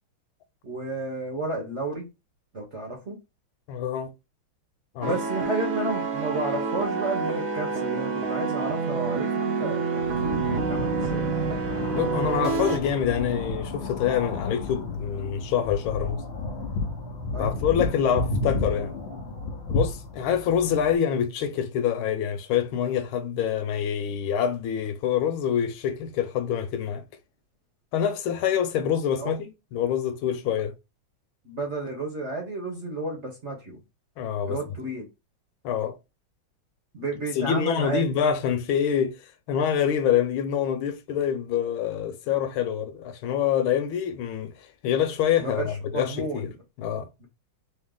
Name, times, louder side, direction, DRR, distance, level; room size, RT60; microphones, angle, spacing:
voice 1, 0.6-2.1 2.5-3.2 5.0-11.3 17.3-17.5 29.2-29.4 31.4-33.8 34.4-35.1 36.9-38.0 45.4-46.4 47.2-47.3, right 2 dB, 45° right, 0.9 m, -32 dB
voice 2, 3.7-4.1 4.9-5.1 11.9-16.2 17.4-18.9 19.7-27.0 27.9-29.5 29.7-30.7 34.2-34.6 35.6-36.0 37.4-39.1 39.5-44.5 44.8-46.5 46.8-47.1, left 8 dB, 80° left, 1.4 m, -26 dB
sound 1, 5.0-12.8, right 5 dB, 80° right, 0.7 m, -28 dB
sound 2, 10.0-21.0, left 2 dB, 65° left, 0.7 m, -32 dB
3.2 x 2.7 x 3.6 m
omnidirectional pair, 2.3 m